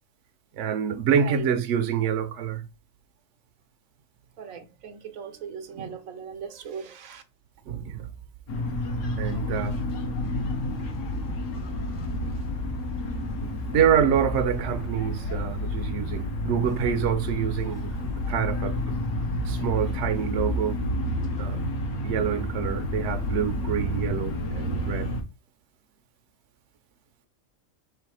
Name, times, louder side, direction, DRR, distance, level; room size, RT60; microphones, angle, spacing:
voice 1, 0.6-2.7 7.7-8.1 9.2-9.8 13.4-18.0 18.3-19.0 19.4-20.8 21.4-21.6 22.0-25.1, right 8 dB, 65° right, 0.9 m, -26 dB
voice 2, 4.4-7.2, right 6 dB, 80° right, 1.2 m, -38 dB
sound 1, 8.5-25.2, left 1 dB, 70° left, 1.3 m, -30 dB
3.4 x 3.2 x 4.7 m
omnidirectional pair, 1.4 m